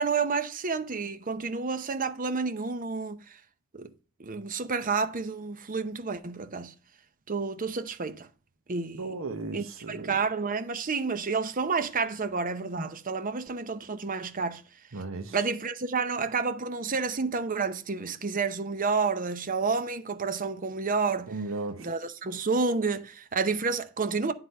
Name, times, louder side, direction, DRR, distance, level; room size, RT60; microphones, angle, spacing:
voice 1, 0.0-3.4 3.7-3.9 4.2-6.7 7.3-8.3 8.7-9.1 9.5-14.6 15.3-21.3 21.8-24.3, right 4 dB, 40° right, 0.8 m, -30 dB
voice 2, 8.9-10.1 14.9-15.4 21.3-21.9, right 3 dB, 65° right, 1.0 m, -35 dB
9.8 x 3.9 x 5.3 m
head